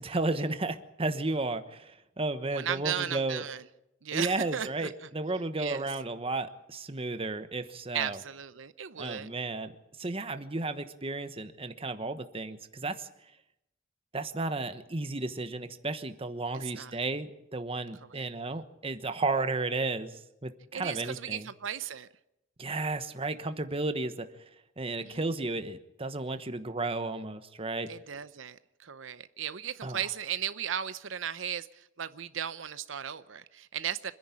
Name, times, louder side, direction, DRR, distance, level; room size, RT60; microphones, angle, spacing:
voice 1, 0.0-3.5 4.1-8.2 9.0-9.7 10.0-13.1 14.1-21.5 22.6-24.3 24.8-27.9 29.8-30.0, right 2 dB, 30° right, 10 dB, 1.2 m, -33 dB
voice 2, 2.5-3.6 4.0-4.9 5.6-5.9 7.9-9.3 16.6-17.0 18.1-18.3 20.7-22.1 25.0-25.3 27.9-34.1, right 9 dB, 85° right, 13 dB, 0.7 m, -36 dB
26.0 x 10.5 x 9.9 m, 0.86 s
head